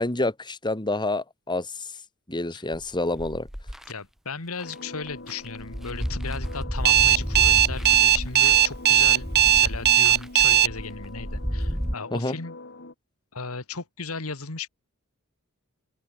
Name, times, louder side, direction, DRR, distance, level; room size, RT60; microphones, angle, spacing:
voice 1, 0.0-1.9 2.3-3.5 12.1-12.4, left 2 dB, 20° left, 2.5 m, -28 dB
sound 1, 2.7-3.9 4.6-4.7 5.1-11.9, equal, ahead, 2.9 m, -32 dB
voice 2, 3.9-12.6 13.3-14.7, left 4 dB, 75° left, 2.1 m, -36 dB
sound 2, 4.6-12.9, left 2 dB, 55° left, 3.8 m, -43 dB
Alarm, 6.8-10.7, right 10 dB, 45° right, 0.8 m, -17 dB
open air
head